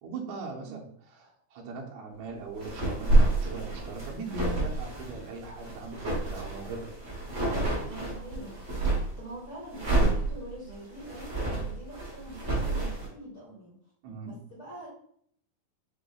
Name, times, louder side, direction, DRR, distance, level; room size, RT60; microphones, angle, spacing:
voice 1, 0.0-6.9 14.0-14.4, right 3 dB, 75° right, -2 dB, 1.8 m, -40 dB
sound 1, 2.5-9.2 9.7-13.1, right 2 dB, 55° right, 0.7 m, -28 dB
voice 2, 7.8-8.6 9.2-13.7 14.2-14.9, right 1 dB, 80° left, -6 dB, 0.8 m, -44 dB
5.7 x 2.1 x 3.8 m, 0.65 s
omnidirectional pair, 3.9 m